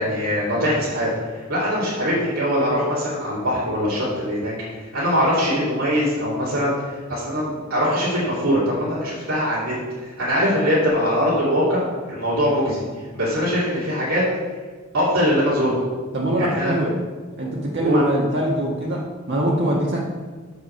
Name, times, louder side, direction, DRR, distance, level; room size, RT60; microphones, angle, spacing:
voice 1, 0.0-9.7 10.0-11.8 12.1-12.8 13.1-14.2 14.9-15.8 16.3-16.8 17.8-18.0, equal, 90° right, -9 dB, 2.5 m, -22 dB
voice 2, 16.1-16.9 17.4-20.0, right 1 dB, 55° right, -4 dB, 1.4 m, -23 dB
6.8 x 6.1 x 6.5 m, 1.4 s
head